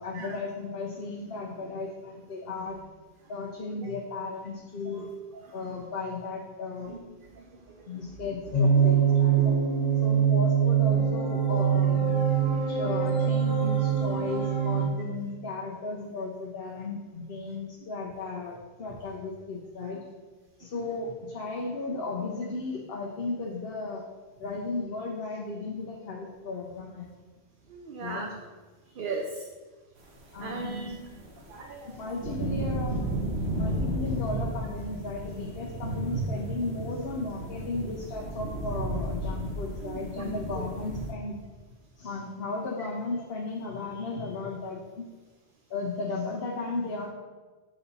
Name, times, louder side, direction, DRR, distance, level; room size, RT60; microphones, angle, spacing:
voice 1, 0.0-2.8 3.3-5.1 5.5-6.9 7.9-9.5 10.0-12.2 12.7-20.0 20.6-24.0 24.4-27.1 28.0-28.3 30.3-31.0 31.9-33.0 33.5-41.4 42.0-45.1 45.7-47.1, left 3 dB, 70° left, -2 dB, 1.0 m, -35 dB
sound 1, 8.5-14.8, right 7 dB, 40° left, 1.5 m, -23 dB
voice 2, 27.7-28.3 29.0-29.5 30.4-31.0 31.5-32.0 39.8-40.6, right 3 dB, 60° right, 2 dB, 0.8 m, -38 dB
sound 2, 30.6-41.1, right 1 dB, 90° right, 1.2 m, -33 dB
7.0 x 4.1 x 4.0 m, 1.3 s
omnidirectional pair, 1.1 m